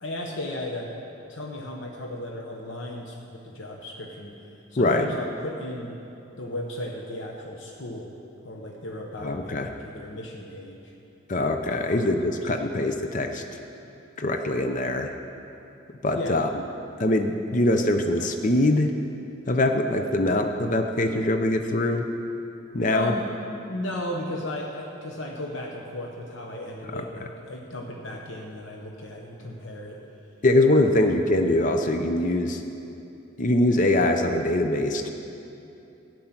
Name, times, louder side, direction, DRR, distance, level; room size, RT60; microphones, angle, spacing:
voice 1, 0.0-0.9 1.3-4.4 4.7-6.0 6.4-8.1 8.4-10.9 11.9-12.1 16.1-16.4 22.9-23.2 23.7-30.0, left 1 dB, 60° left, 0 dB, 1.0 m, -35 dB
voice 2, 4.8-5.1 9.2-9.7 11.3-13.6 14.2-15.1 16.0-16.5 17.0-18.9 19.5-22.1 22.7-23.1 26.9-27.0 30.4-32.6 33.4-35.1, left 1 dB, 40° left, 5 dB, 0.6 m, -23 dB
12.5 x 9.1 x 5.9 m, 2.8 s
head